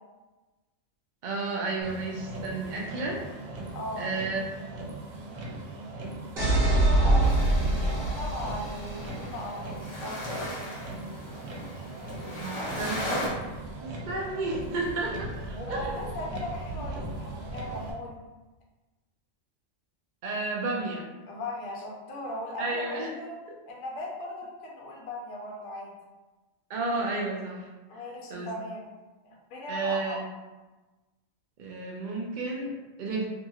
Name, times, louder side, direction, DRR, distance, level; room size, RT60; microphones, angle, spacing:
voice 1, 1.2-3.2 4.0-4.4 12.3-13.3 13.8-16.1 16.7-16.9 20.2-21.0 22.6-23.1 26.7-27.7 28.3-28.5 29.7-30.3 31.6-33.3, right 3 dB, 75° right, -1 dB, 0.4 m, -32 dB
Motor vehicle (road), 1.8-17.9, right 2 dB, 90° right, 1.0 m, -39 dB
voice 2, 3.7-4.1 6.5-7.4 7.8-10.2 15.5-18.2 21.3-23.4 23.7-26.0 27.9-28.9 29.2-30.2, left 1 dB, 70° left, -2 dB, 0.9 m, -38 dB
sound 1, 6.4-9.2, right 1 dB, 50° right, 0.9 m, -24 dB
sound 2, 7.2-13.3, left 1 dB, 40° left, 0.4 m, -37 dB
2.8 x 2.7 x 2.3 m, 1.2 s
omnidirectional pair, 1.4 m